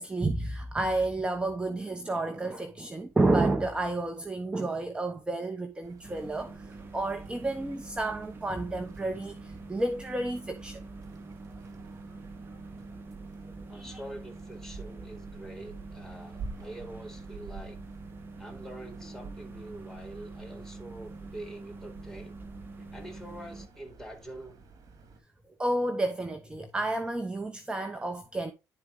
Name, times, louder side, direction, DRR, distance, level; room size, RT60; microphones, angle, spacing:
voice 1, 0.0-10.8 13.7-14.0 25.6-28.5, right 2 dB, 15° right, 1.0 m, -30 dB
sound 1, 5.8-25.2, right 4 dB, 55° right, 2.4 m, -50 dB
sound 2, 6.0-23.7, right 3 dB, 30° right, 1.7 m, -45 dB
voice 2, 13.6-17.8 18.4-22.4 22.9-24.7, right 1 dB, 5° left, 4.2 m, -45 dB
11.5 x 4.6 x 3.8 m
cardioid pair, 110°, 7 cm